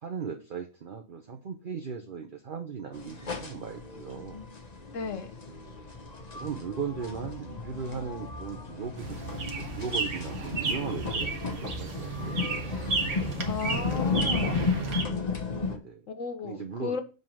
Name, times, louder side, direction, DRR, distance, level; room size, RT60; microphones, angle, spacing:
voice 1, 0.0-4.5 5.5-5.8 6.3-12.7 15.7-16.1 16.4-17.0, right 6 dB, 50° right, 4 dB, 0.9 m, -38 dB
sound 1, 2.9-15.8, left 4 dB, 35° left, 1.0 m, -34 dB
voice 2, 4.9-5.3 13.4-14.7 16.1-17.0, left 5 dB, 85° left, 8 dB, 1.4 m, -35 dB
sound 2, 9.0-15.0, right 4 dB, 70° right, 1.6 m, -33 dB
7.5 x 3.8 x 6.1 m, 0.35 s
omnidirectional pair, 1.3 m